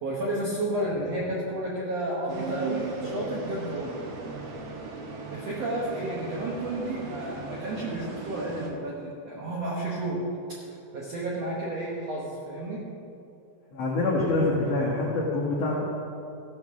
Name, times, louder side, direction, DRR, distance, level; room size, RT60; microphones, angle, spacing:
voice 1, 0.0-3.9 5.3-10.2 10.7-12.8, right 1 dB, 70° right, -4 dB, 1.5 m, -32 dB
sound 1, 2.3-8.7, right 4 dB, 90° right, 1.4 m, -37 dB
voice 2, 13.7-15.8, left 2 dB, 75° left, -4 dB, 1.5 m, -25 dB
14.5 x 5.4 x 6.1 m, 2.7 s
omnidirectional pair, 4.6 m